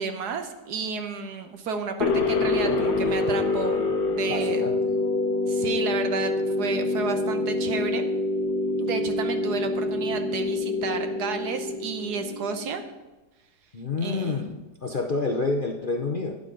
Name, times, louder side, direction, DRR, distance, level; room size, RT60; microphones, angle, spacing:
voice 1, 0.0-4.6 5.5-8.1 8.8-12.8 14.0-14.4, right 5 dB, 70° right, 7 dB, 1.5 m, -32 dB
sound 1, 2.0-12.9, left 2 dB, 70° left, 1.7 m, -26 dB
voice 2, 4.3-4.9 13.7-16.3, left 3 dB, 45° left, 1 dB, 0.7 m, -28 dB
12.0 x 9.9 x 3.9 m, 1.1 s
omnidirectional pair, 1.8 m